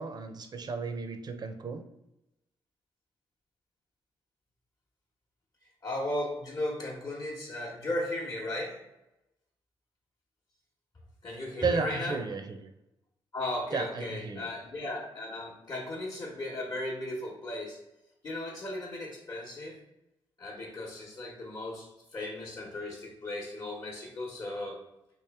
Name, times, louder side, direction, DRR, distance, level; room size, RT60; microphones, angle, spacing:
voice 1, 0.0-1.8 11.6-12.7 13.7-14.5, right 4 dB, 45° right, 7 dB, 0.5 m, -33 dB
voice 2, 5.8-8.8 11.2-12.2 13.3-17.8 18.2-19.8 20.4-24.8, left 1 dB, 40° left, -3 dB, 0.9 m, -36 dB
3.0 x 2.9 x 3.4 m, 0.90 s
supercardioid pair, 60°, 10 cm